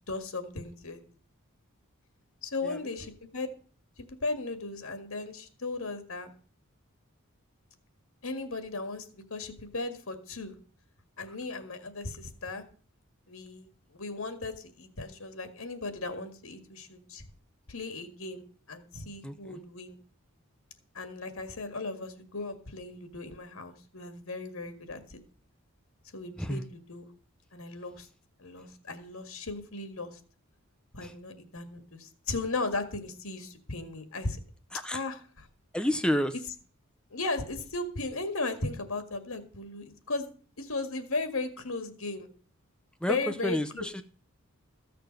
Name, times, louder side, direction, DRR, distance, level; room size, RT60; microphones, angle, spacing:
voice 1, 0.1-1.0 2.4-3.5 4.1-6.3 8.2-10.5 11.2-12.6 13.3-17.2 17.7-20.0 20.9-25.2 26.1-27.1 27.5-28.1 28.4-30.2 30.9-34.4 34.9-35.2 37.1-40.3 40.6-42.3 43.1-43.8, left 3 dB, 70° left, 8 dB, 1.9 m, -36 dB
voice 2, 19.2-19.6 26.4-26.6 31.0-31.1 34.7-35.0 35.7-36.3 43.0-44.0, equal, 5° left, 8 dB, 0.6 m, -30 dB
14.5 x 6.8 x 6.5 m, 0.41 s
head